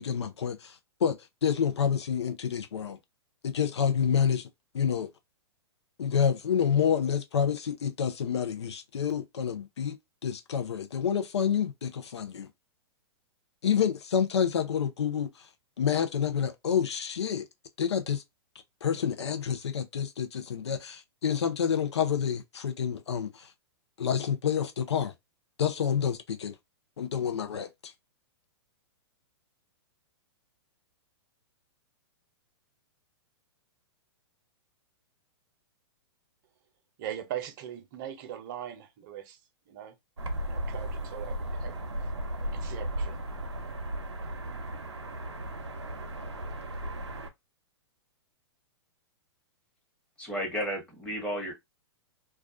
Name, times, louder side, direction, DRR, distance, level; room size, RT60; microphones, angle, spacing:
voice 1, 0.0-3.0 3.4-4.5 4.7-5.1 6.0-10.0 10.2-12.5 13.6-15.5 15.8-17.5 17.8-18.2 18.8-23.5 24.0-25.1 25.6-26.6 27.0-27.9, left 8 dB, 75° left, 0.6 m, -28 dB
voice 2, 37.0-39.4 39.7-39.9 40.4-41.8 42.4-43.2, right 10 dB, 45° right, 0.6 m, -40 dB
sound 1, 40.2-47.3, right 1 dB, 90° right, 0.6 m, -35 dB
voice 3, 50.2-51.5, equal, 5° left, 1.1 m, -33 dB
2.3 x 2.2 x 2.4 m
hypercardioid pair, 115°, 14 cm